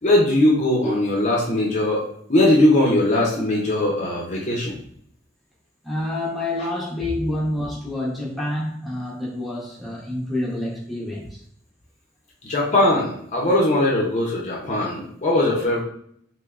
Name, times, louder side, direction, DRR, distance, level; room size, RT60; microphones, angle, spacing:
voice 1, 0.0-4.8 12.5-15.8, left 1 dB, 40° left, -3 dB, 0.6 m, -20 dB
voice 2, 5.8-11.4, left 1 dB, ahead, -5 dB, 0.8 m, -28 dB
3.3 x 3.0 x 2.4 m, 0.66 s
head